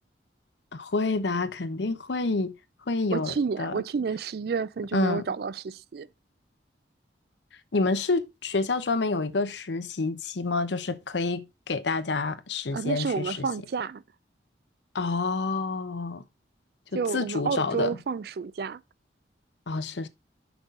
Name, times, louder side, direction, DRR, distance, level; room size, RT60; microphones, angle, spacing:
voice 1, 0.7-2.5 2.9-3.7 4.9-5.2 7.7-13.5 14.9-16.2 16.9-17.9 19.7-20.1, left 3 dB, 70° left, 0.7 m, -28 dB
voice 2, 3.1-6.1 12.7-14.0 16.9-18.8, right 5 dB, 55° right, 0.4 m, -30 dB
6.1 x 5.5 x 3.6 m
head